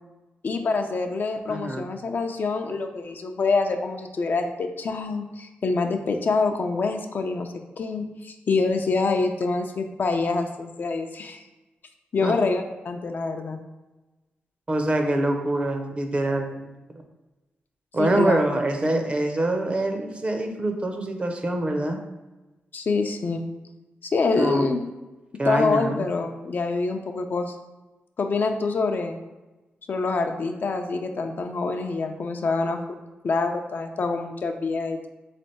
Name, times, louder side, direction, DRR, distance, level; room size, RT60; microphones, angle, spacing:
voice 1, 0.4-11.4 12.1-13.6 18.0-18.4 22.7-23.4 24.0-24.8 25.4-27.5 28.2-29.2 29.9-35.1, left 3 dB, 55° left, 4 dB, 0.5 m, -26 dB
voice 2, 1.5-1.9 12.2-12.3 14.7-16.7 17.9-22.0 24.4-24.7 25.4-26.0, right 1 dB, 30° right, 4 dB, 0.6 m, -25 dB
3.6 x 3.3 x 4.1 m, 1.1 s
cardioid pair, 95°, 4 cm